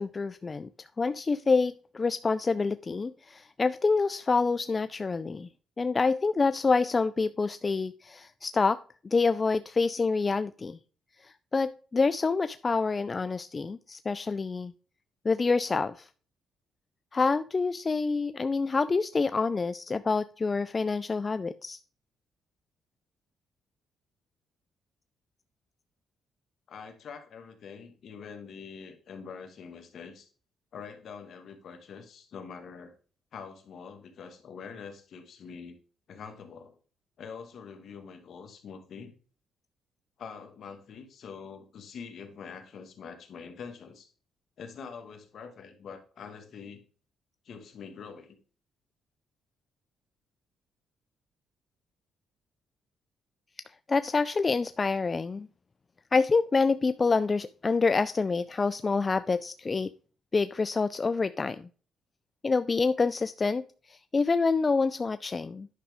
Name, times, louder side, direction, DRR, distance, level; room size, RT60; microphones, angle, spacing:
voice 1, 0.0-5.5 5.8-8.8 9.1-10.8 11.2-14.7 15.2-16.1 17.1-21.8 53.9-55.5 56.1-59.9 60.3-61.7 62.4-65.7, left 4 dB, 30° left, 13 dB, 0.3 m, -27 dB
voice 2, 26.7-30.3 30.7-32.9 33.3-35.8 36.1-36.8 37.2-39.1 40.2-44.1 44.6-46.8 47.4-48.4, left 6 dB, 60° left, 7 dB, 1.6 m, -45 dB
10.0 x 6.1 x 3.5 m, 0.39 s
cardioid pair, 90°, 0 cm